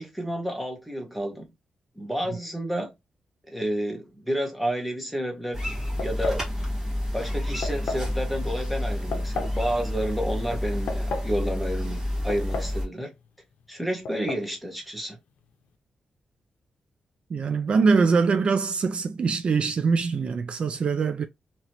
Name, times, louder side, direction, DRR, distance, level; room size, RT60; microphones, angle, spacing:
voice 1, 0.0-1.4 2.0-2.9 3.5-6.5 7.1-13.1 13.7-15.2, equal, ahead, 1.1 m, -30 dB
sound 1, 5.5-12.9, left 1 dB, 15° right, 1.5 m, -29 dB
sound 2, 6.0-6.5 7.6-8.1 9.1-9.6 10.6-11.3 12.3-12.8 13.1-13.2 14.1-14.5, left 3 dB, 75° left, 0.6 m, -33 dB
voice 2, 17.3-21.3, right 5 dB, 50° right, 0.3 m, -23 dB
2.9 x 2.9 x 2.9 m
cardioid pair, 105°, 2 cm